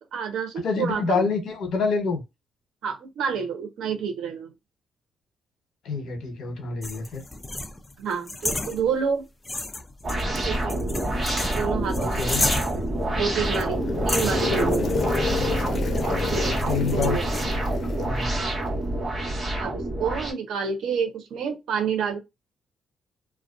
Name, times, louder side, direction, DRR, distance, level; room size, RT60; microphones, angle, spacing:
voice 1, 0.1-1.3 2.8-4.5 8.0-9.3 10.3-10.8 11.6-12.3 13.1-14.9 16.0-16.6 16.9-17.3 18.4-18.6 19.6-22.2, right 6 dB, 75° right, 0.7 m, -29 dB
voice 2, 0.6-2.2 5.8-7.2 12.0-12.4 16.7-17.2 18.0-18.3, left 4 dB, 70° left, 1.0 m, -27 dB
sound 1, 6.8-9.2 9.4-13.0 13.5-13.7 14.1-17.4, left 2 dB, 20° left, 0.4 m, -32 dB
sound 2, 10.0-20.3, right 1 dB, 25° right, 1.4 m, -27 dB
sound 3, 12.8-18.9, left 4 dB, 45° left, 0.9 m, -30 dB
2.4 x 2.1 x 2.5 m
cardioid pair, 90°, 0 cm